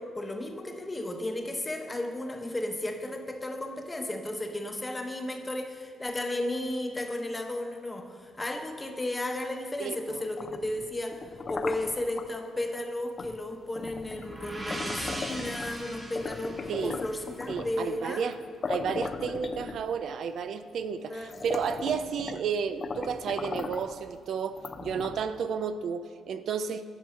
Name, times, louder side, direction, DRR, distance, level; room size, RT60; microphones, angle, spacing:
voice 1, 0.0-18.2 19.6-19.7 21.1-21.4, left 1 dB, 20° left, 4 dB, 1.0 m, -34 dB
voice 2, 9.8-10.2 16.7-17.0 17.5-18.4 18.7-26.8, right 6 dB, 65° right, 11 dB, 0.4 m, -32 dB
sound 1, 10.2-12.3 13.2-13.4 13.7-15.8 16.2-17.8 18.3-18.4 18.6-20.1 20.8-20.9 21.2-22.5 22.8-24.0 24.6-25.4, left 4 dB, 40° left, 0.5 m, -37 dB
sound 2, 14.0-17.8, right 1 dB, 20° right, 1.3 m, -40 dB
10.5 x 4.5 x 5.8 m, 2.2 s
cardioid pair, 90°, 0 cm